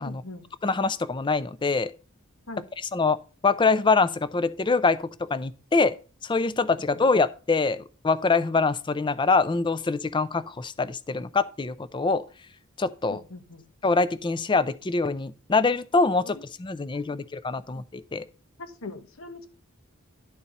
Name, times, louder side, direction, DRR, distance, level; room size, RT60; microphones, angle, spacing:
voice 1, 0.0-0.5 2.5-2.7 13.1-13.6 16.3-16.4 16.9-17.2 17.5-17.6 18.6-19.5, left 2 dB, 75° left, 1.1 m, -41 dB
voice 2, 0.6-1.9 2.8-3.2 3.4-6.0 6.2-12.2 12.8-13.2 13.8-18.3, left 4 dB, 20° left, 0.4 m, -24 dB
11.0 x 4.4 x 5.3 m
head